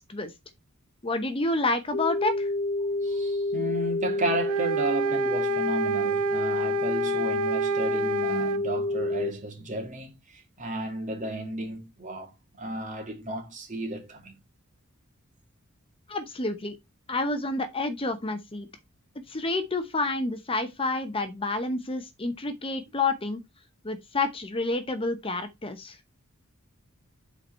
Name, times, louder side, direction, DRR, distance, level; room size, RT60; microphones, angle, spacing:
voice 1, 1.0-2.5 16.1-16.8 17.1-18.7 19.3-23.4 23.8-26.0, left 2 dB, 25° left, 0.8 m, -29 dB
sound 1, 1.9-9.3, left 2 dB, 45° left, 0.4 m, -28 dB
voice 2, 3.0-12.3 12.6-14.3, right 1 dB, 35° right, 2.3 m, -33 dB
sound 2, 4.4-8.6, right 7 dB, 85° right, 0.6 m, -30 dB
8.0 x 4.5 x 4.3 m
head